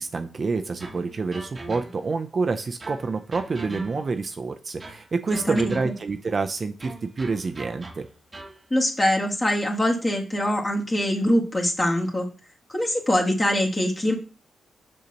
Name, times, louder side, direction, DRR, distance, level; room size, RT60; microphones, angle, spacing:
voice 1, 0.0-8.1, right 4 dB, 40° right, 7 dB, 0.5 m, -28 dB
sound 1, 0.8-2.2 2.8-4.3 4.8-6.2 6.8-8.6, right 1 dB, 25° right, 1.0 m, -42 dB
voice 2, 5.5-5.8 8.7-12.3 12.7-14.1, left 1 dB, 25° left, 0 dB, 1.7 m, -23 dB
6.6 x 6.4 x 2.9 m, 0.35 s
cardioid pair, 105°, 0 cm